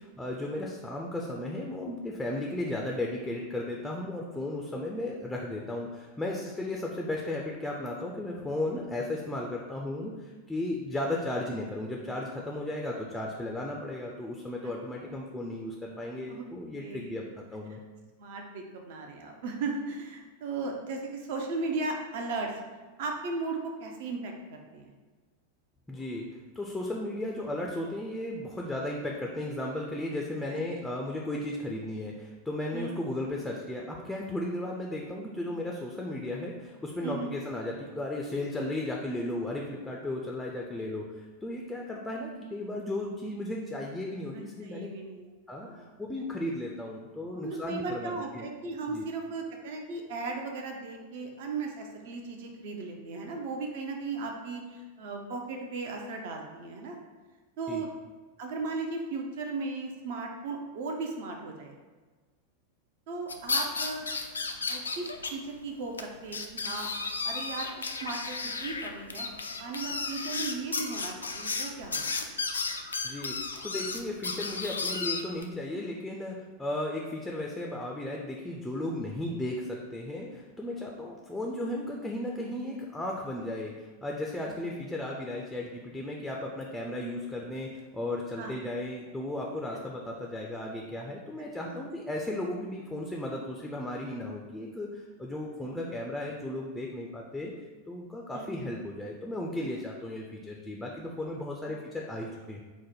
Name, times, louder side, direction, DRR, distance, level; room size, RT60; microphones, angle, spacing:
voice 1, 0.0-17.8 25.9-26.3 26.6-44.9 45.5-48.4 48.9-49.0 57.7-57.8 73.0-97.5 97.9-102.6, left 1 dB, 5° left, -1 dB, 0.4 m, -35 dB
voice 2, 16.7-17.2 17.7-17.8 18.2-22.5 23.0-24.9 30.5-30.6 32.7-33.0 37.0-37.4 44.3-45.9 47.4-57.0 57.6-57.9 58.4-61.7 63.1-64.0 64.7-66.9 67.2-72.0 84.4-84.7 88.4-88.6 89.7-89.8 91.6-91.9 95.6-95.9 98.3-98.7, right 3 dB, 50° right, 2 dB, 0.5 m, -37 dB
sound 1, 63.3-65.3 65.6-65.7 66.0-66.1 66.3-75.4, left 4 dB, 75° left, 0.3 m, -33 dB
4.6 x 2.1 x 4.1 m, 1.3 s
figure-of-eight pair, 90°, 0 cm